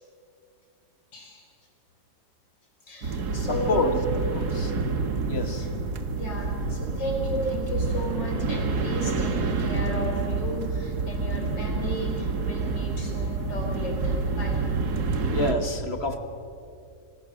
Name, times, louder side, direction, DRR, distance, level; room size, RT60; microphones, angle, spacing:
voice 1, 1.1-1.4 2.9-3.9 6.1-14.7, equal, 65° left, 1 dB, 4.9 m, -34 dB
sound 1, 3.0-15.5, right 4 dB, 55° right, 2.0 m, -28 dB
voice 2, 3.5-3.9 4.3-4.8 5.3-5.7 15.3-16.2, left 2 dB, 35° left, 7 dB, 1.5 m, -28 dB
26.0 x 20.5 x 6.4 m, 2.5 s
omnidirectional pair, 2.1 m